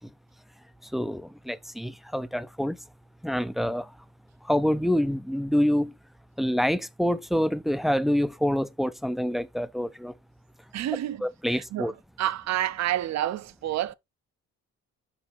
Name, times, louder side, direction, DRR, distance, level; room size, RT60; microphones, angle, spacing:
voice 1, 0.9-2.8 3.2-3.9 4.5-5.9 6.4-10.1 11.2-11.9, equal, ahead, 0.4 m, -26 dB
voice 2, 10.7-11.2 11.5-11.9 12.2-13.9, right 12 dB, 60° right, 0.6 m, -29 dB
5.6 x 4.9 x 3.4 m
cardioid pair, 90°, 30 cm